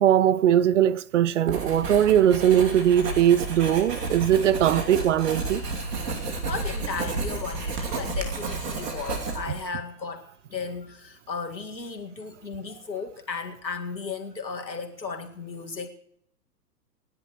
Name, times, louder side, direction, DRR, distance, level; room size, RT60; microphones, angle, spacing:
voice 1, 0.0-5.6, right 10 dB, 50° right, 0.6 m, -20 dB
Writing, 1.5-9.7, right 3 dB, 70° right, 2.8 m, -31 dB
voice 2, 6.4-15.9, left 5 dB, 85° left, 2.1 m, -35 dB
26.5 x 10.5 x 3.1 m
figure-of-eight pair, 115°, 50 cm